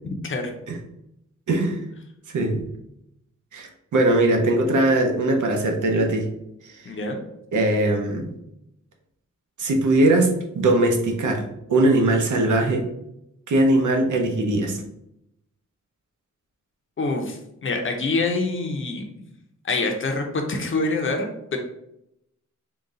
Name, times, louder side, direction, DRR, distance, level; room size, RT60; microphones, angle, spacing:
voice 1, 1.5-1.8 2.3-2.6 3.5-6.3 6.6-6.8 7.5-8.3 9.6-11.4 11.7-12.9 13.5-14.8, right 2 dB, 90° right, 2 dB, 0.8 m, -20 dB
voice 2, 6.8-7.2 17.0-19.3 19.6-21.6, left 3 dB, 45° left, 3 dB, 0.6 m, -26 dB
3.9 x 2.3 x 3.7 m, 0.81 s
wide cardioid pair, 165°, 30 cm